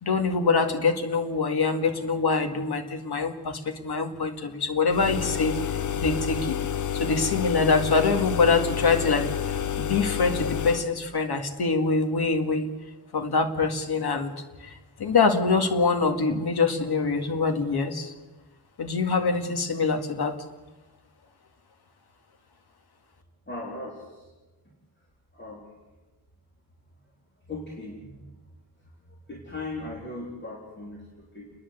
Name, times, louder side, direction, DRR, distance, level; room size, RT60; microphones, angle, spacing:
voice 1, 0.0-6.6 6.9-12.7 13.1-14.3 14.6-18.1 18.8-20.4, left 4 dB, 75° left, 5 dB, 2.1 m, -25 dB
sound 1, 4.9-10.9, left 9 dB, 50° left, 0.8 m, -29 dB
voice 2, 23.5-24.3 25.3-25.7 27.5-28.3 29.3-31.5, left 2 dB, 30° left, -3 dB, 3.5 m, -38 dB
29.5 x 11.0 x 8.0 m, 1.2 s
wide cardioid pair, 135°, 39 cm